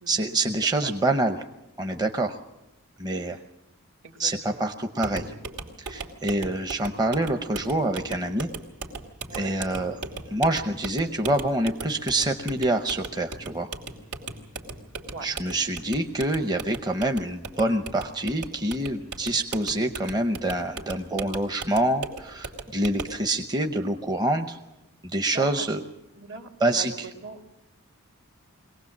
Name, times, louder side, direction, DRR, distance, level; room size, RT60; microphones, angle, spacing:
voice 1, 0.1-1.4 1.8-2.4 3.0-3.4 4.2-5.3 5.8-8.5 9.3-9.9 10.3-13.7 15.2-24.6 25.0-25.8 26.6-27.1, right 1 dB, 20° right, 5 dB, 0.7 m, -26 dB
voice 2, 3.1-3.4 4.0-4.6 9.3-9.9 15.1-15.3 25.3-25.7 26.2-27.4, right 4 dB, 55° right, 4 dB, 2.1 m, -41 dB
sound 1, 5.0-23.2, right 3 dB, 90° right, 2.9 m, -38 dB
22.5 x 18.5 x 7.3 m, 0.94 s
head